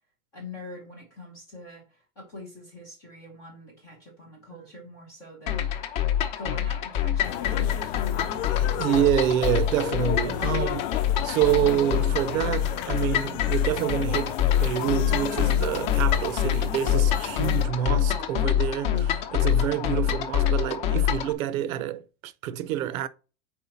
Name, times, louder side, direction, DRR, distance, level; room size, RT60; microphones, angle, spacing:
voice 1, 0.3-5.9 6.4-8.4 17.3-17.7, left 1 dB, 10° left, 0.3 m, -44 dB
sound 1, 5.5-21.3, left 10 dB, 35° left, 0.7 m, -25 dB
sound 2, 7.2-17.6, left 13 dB, 70° left, 0.5 m, -35 dB
voice 2, 8.3-23.1, right 11 dB, 85° right, 0.8 m, -27 dB
4.8 x 4.3 x 5.4 m
supercardioid pair, 180°, 40 cm